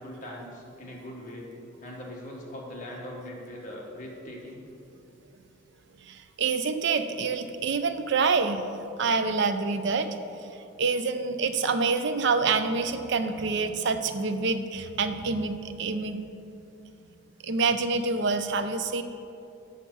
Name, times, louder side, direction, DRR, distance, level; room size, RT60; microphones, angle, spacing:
voice 1, 0.0-1.5 1.8-4.6, left 1 dB, 40° left, -2 dB, 1.3 m, -41 dB
voice 2, 6.1-8.6 9.0-10.1 10.8-16.2 17.4-19.0, right 4 dB, 55° right, 9 dB, 0.4 m, -26 dB
7.0 x 5.9 x 6.0 m, 2.7 s
head